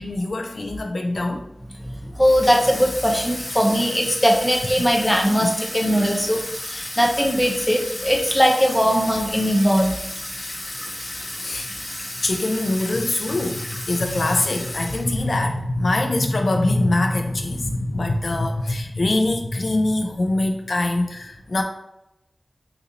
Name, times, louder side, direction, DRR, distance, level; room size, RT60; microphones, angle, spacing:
voice 1, 0.0-1.5 11.4-11.7 12.2-13.6 13.9-21.6, left 2 dB, 75° left, 4 dB, 0.3 m, -23 dB
voice 2, 1.8-9.9 17.6-17.8, equal, 15° left, 0 dB, 0.7 m, -20 dB
Water tap faucet / Sink (filling or washing), 2.2-15.4, left 1 dB, 60° left, 0.8 m, -33 dB
3.9 x 2.6 x 2.8 m, 0.86 s
wide cardioid pair, 55°, 0 cm